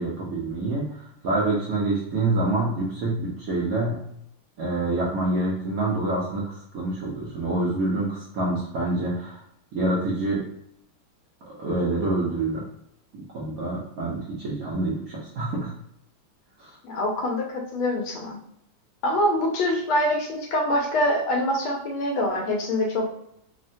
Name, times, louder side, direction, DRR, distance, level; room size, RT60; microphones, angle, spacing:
voice 1, 0.0-4.0 4.6-9.4 9.7-10.4 11.4-12.6 13.1-15.7 16.6-16.8, right 2 dB, 70° right, -5 dB, 0.8 m, -27 dB
voice 2, 16.8-18.4 19.0-23.1, left 1 dB, 85° left, 1 dB, 1.6 m, -24 dB
3.6 x 2.1 x 2.6 m, 0.75 s
omnidirectional pair, 2.3 m